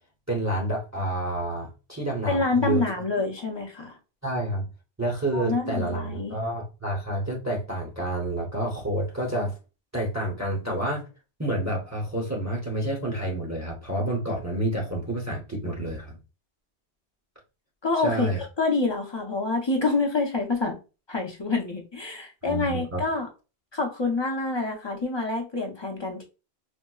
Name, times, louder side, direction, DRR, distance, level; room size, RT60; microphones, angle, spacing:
voice 1, 0.3-2.8 4.2-4.7 5.0-9.5 9.9-11.0 11.4-16.2 18.0-18.4 22.5-23.0, right 1 dB, 15° right, -1 dB, 0.8 m, -29 dB
voice 2, 2.3-4.0 5.3-6.4 17.8-20.8 21.1-23.3 23.7-26.2, left 3 dB, 30° left, 1 dB, 0.6 m, -27 dB
4.4 x 2.0 x 2.3 m, 0.31 s
omnidirectional pair, 1.1 m